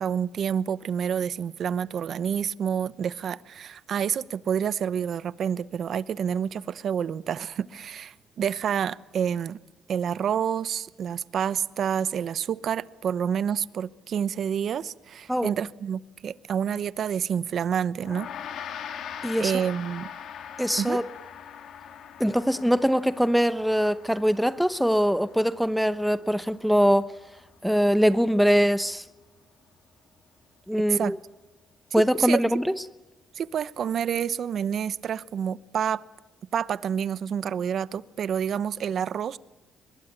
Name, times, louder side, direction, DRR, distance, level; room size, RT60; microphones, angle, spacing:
voice 1, 0.0-9.6 9.9-18.3 19.4-20.1 20.8-21.0 30.9-31.1 32.2-32.4 33.3-36.0 36.5-39.4, right 8 dB, 60° right, 0.9 m, -28 dB
Gong, 18.0-27.6, left 8 dB, 70° left, 3.0 m, -42 dB
voice 2, 20.6-21.0 22.2-27.1 27.6-29.0 30.7-31.2 31.9-32.8, equal, ahead, 1.0 m, -22 dB
23.5 x 22.0 x 9.0 m
cardioid pair, 90°, 0 cm